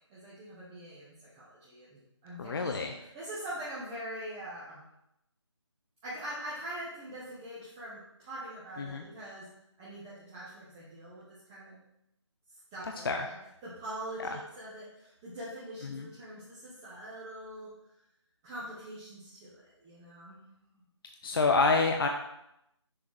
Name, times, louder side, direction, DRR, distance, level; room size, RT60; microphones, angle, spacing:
voice 1, 0.1-4.9 6.0-9.4 9.8-11.7 12.7-13.4 13.6-17.7 18.4-20.4, right 1 dB, 10° right, -9 dB, 0.5 m, -43 dB
voice 2, 2.4-2.9 8.8-9.0 13.1-13.2 15.9-16.1 21.2-22.1, left 3 dB, 50° left, 3 dB, 0.5 m, -27 dB
6.3 x 4.5 x 3.7 m, 0.83 s
figure-of-eight pair, 165°, 16 cm